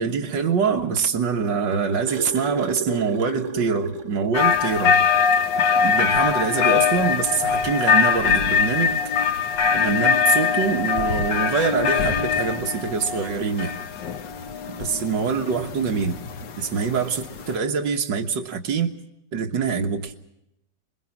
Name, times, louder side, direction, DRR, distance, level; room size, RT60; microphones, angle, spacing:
voice 1, 0.0-5.0 5.8-9.0 9.7-13.7 14.8-16.2 16.6-18.9 19.3-20.1, right 6 dB, 75° right, 2.1 m, -24 dB
sound 1, 1.5-4.4 4.8-4.9 5.3-5.5 6.6-6.7, right 3 dB, 60° right, 2.5 m, -32 dB
sound 2, 4.3-17.6, left 6 dB, 70° left, 1.8 m, -22 dB
27.5 x 21.5 x 6.0 m
omnidirectional pair, 2.0 m